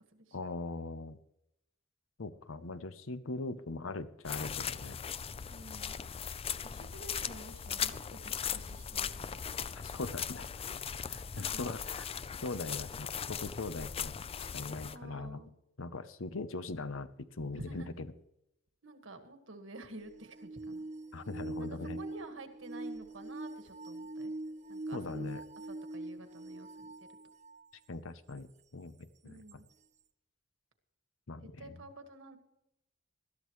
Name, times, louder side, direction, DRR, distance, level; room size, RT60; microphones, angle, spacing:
voice 1, 0.3-1.2 2.2-5.0 9.8-10.5 11.4-12.1 12.4-14.1 14.5-15.4 15.8-18.1 21.1-22.0 24.9-25.4 27.9-28.5 28.7-29.6 31.3-31.7, left 3 dB, 85° left, 13 dB, 0.8 m, -40 dB
sound 1, 4.2-15.0, left 7 dB, 30° left, 0.4 m, -39 dB
voice 2, 5.5-5.9 6.6-9.4 11.1-11.4 14.8-15.5 17.6-17.9 18.8-20.9 21.6-24.3 24.7-25.3 25.7-26.9 29.2-29.6 31.4-32.4, right 2 dB, 70° right, 6 dB, 1.7 m, -50 dB
sound 2, 20.0-27.7 28.4-28.5 29.5-29.6, right 2 dB, 35° right, 0.7 m, -43 dB
20.5 x 12.5 x 3.1 m, 0.83 s
head